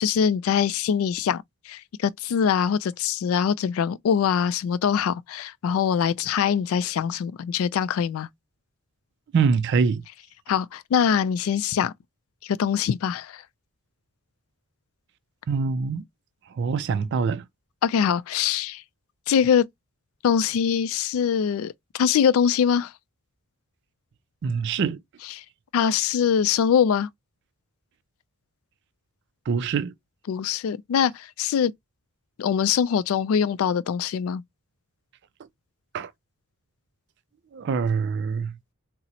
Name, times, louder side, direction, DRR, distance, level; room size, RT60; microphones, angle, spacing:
voice 1, 0.0-8.3 10.5-11.9 12.4-13.4 17.8-18.8 19.3-19.6 20.2-22.9 25.2-25.4 25.7-27.1 30.3-31.7 32.4-34.4, left 7 dB, 75° left, 0.3 m, -23 dB
voice 2, 9.3-10.0 15.5-16.0 16.5-17.4 24.4-25.0 29.5-29.9 35.9-36.1 37.5-38.6, right 5 dB, 55° right, 0.3 m, -24 dB
4.0 x 2.0 x 2.8 m
head